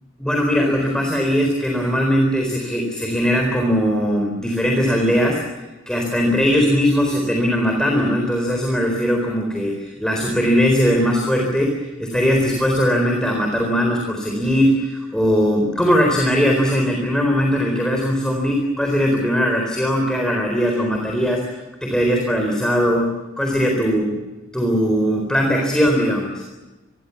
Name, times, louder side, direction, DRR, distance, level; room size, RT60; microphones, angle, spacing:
voice 1, 0.2-5.4 5.9-24.0 24.5-26.4, equal, 5° left, 1 dB, 4.2 m, -19 dB
27.5 x 22.0 x 7.2 m, 1.1 s
head